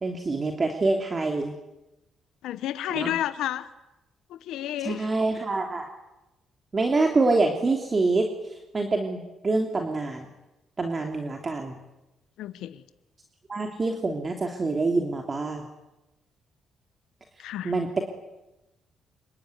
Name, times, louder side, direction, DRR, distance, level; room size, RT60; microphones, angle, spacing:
voice 1, 0.0-1.5 2.9-3.1 4.8-5.9 6.7-10.3 10.8-11.8 13.5-15.7 17.6-18.0, right 3 dB, 30° right, 3 dB, 3.1 m, -26 dB
voice 2, 2.4-3.7 4.3-5.1 12.4-12.8 17.4-17.7, left 12 dB, 85° left, 12 dB, 1.1 m, -31 dB
26.5 x 22.5 x 9.5 m, 0.97 s
cardioid pair, 90°, 0 cm